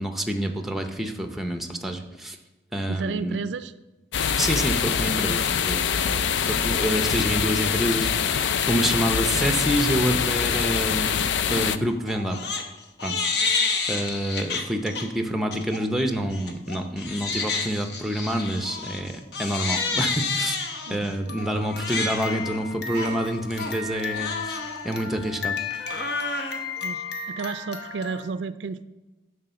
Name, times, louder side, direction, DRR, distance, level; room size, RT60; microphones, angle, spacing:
voice 1, 0.0-2.4 2.7-3.4 4.3-11.2 11.5-12.4 13.0-13.5 13.9-20.6 20.9-25.6, right 1 dB, ahead, 5 dB, 0.6 m, -27 dB
voice 2, 2.9-3.7 20.9-21.1 26.8-28.8, right 4 dB, 75° right, 13 dB, 0.4 m, -32 dB
sound 1, 4.1-11.8, left 7 dB, 75° left, 0.4 m, -24 dB
Crying sobbing, 12.1-12.6 13.0-15.0 15.5-15.8 16.3-28.3, left 4 dB, 60° left, 1.0 m, -30 dB
10.5 x 3.8 x 6.8 m, 1.1 s
head